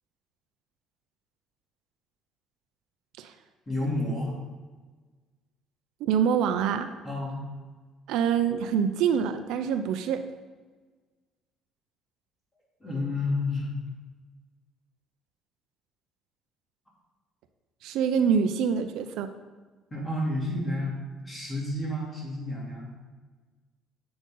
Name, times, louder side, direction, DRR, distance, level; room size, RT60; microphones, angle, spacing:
voice 1, 3.7-4.4 7.0-7.5 12.8-13.7 19.9-20.9 21.2-22.9, left 1 dB, 15° left, -4 dB, 3.1 m, -30 dB
voice 2, 6.0-6.9 8.1-10.2 17.8-19.3, right 7 dB, 75° right, 8 dB, 0.7 m, -25 dB
10.0 x 7.9 x 3.9 m, 1.4 s
cardioid pair, 150°, 0 cm